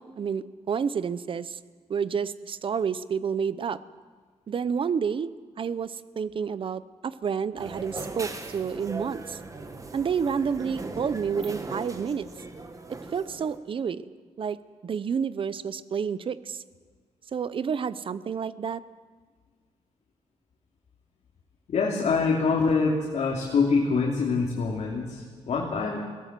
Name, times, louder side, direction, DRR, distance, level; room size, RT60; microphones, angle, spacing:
voice 1, 0.0-1.6 1.9-3.8 4.5-9.4 9.9-12.3 12.9-14.1 14.4-14.6 14.8-16.6 17.3-18.8, right 6 dB, 45° right, 16 dB, 0.7 m, -29 dB
sound 1, 7.6-13.6, right 3 dB, 25° right, 1.7 m, -39 dB
voice 2, 21.7-26.0, left 4 dB, 70° left, -3 dB, 3.2 m, -25 dB
21.5 x 17.5 x 7.6 m, 1.5 s
wide cardioid pair, 140°, 12 cm